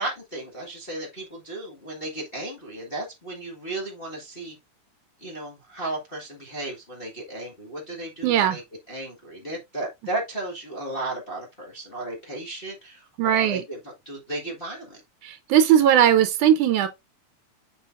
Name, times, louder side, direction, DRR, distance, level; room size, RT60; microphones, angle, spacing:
voice 1, 0.0-4.5 5.2-8.6 8.9-15.0, right 2 dB, 25° left, 1.3 m, -34 dB
voice 2, 8.2-8.6 13.2-13.6 15.2-16.9, right 10 dB, 85° right, 2.3 m, -19 dB
6.9 x 5.8 x 2.5 m
omnidirectional pair, 3.4 m